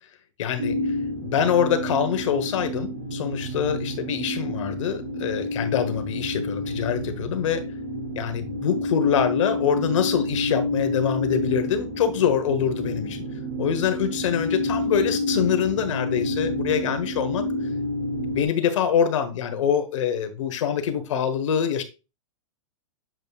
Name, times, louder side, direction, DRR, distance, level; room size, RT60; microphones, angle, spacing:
voice 1, 0.4-1.0 1.2-7.6 8.1-13.2 13.6-17.5 18.3-21.8, left 8 dB, 65° left, 1.4 m, -25 dB
sound 1, 0.6-18.4, left 1 dB, 20° right, 0.8 m, -29 dB
7.6 x 5.2 x 2.4 m
supercardioid pair, 165°, 17 cm